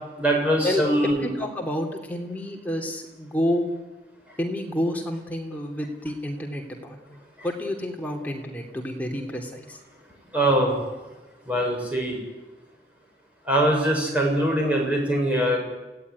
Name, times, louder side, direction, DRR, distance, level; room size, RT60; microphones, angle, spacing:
voice 1, 0.2-1.3 7.4-7.5 10.3-10.8 11.4-12.2 13.4-15.6, right 1 dB, 10° right, -1 dB, 7.4 m, -22 dB
voice 2, 1.2-3.7 4.4-9.8, left 1 dB, 10° left, 1 dB, 3.1 m, -29 dB
28.5 x 17.5 x 9.7 m, 1.2 s
head